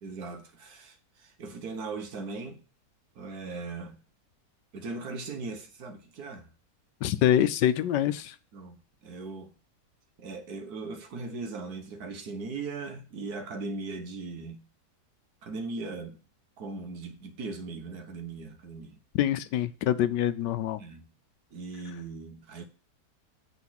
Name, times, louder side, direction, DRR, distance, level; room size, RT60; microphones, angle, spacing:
voice 1, 0.0-2.6 3.1-4.0 4.7-6.5 8.5-8.8 9.0-9.5 10.2-14.6 15.4-16.2 16.6-19.0 20.8-21.1 21.5-22.7, right 3 dB, 65° right, 1.7 m, -39 dB
voice 2, 7.0-8.3 19.1-20.8, left 11 dB, 85° left, 1.3 m, -25 dB
8.3 x 4.3 x 5.8 m
omnidirectional pair, 1.8 m